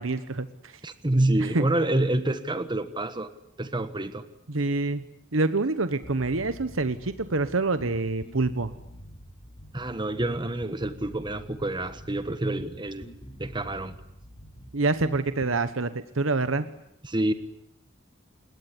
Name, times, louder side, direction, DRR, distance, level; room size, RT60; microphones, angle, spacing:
voice 1, 0.0-0.8 1.4-1.6 4.5-5.0 5.3-8.7 14.7-16.7, right 3 dB, 70° right, 12 dB, 1.2 m, -26 dB
voice 2, 0.8-3.3 3.6-4.2 9.7-13.1 13.4-13.9 17.0-17.3, right 1 dB, 25° right, 11 dB, 1.4 m, -27 dB
sound 1, 6.0-15.6, equal, 25° left, 4.2 m, -46 dB
27.5 x 21.5 x 9.7 m, 0.76 s
head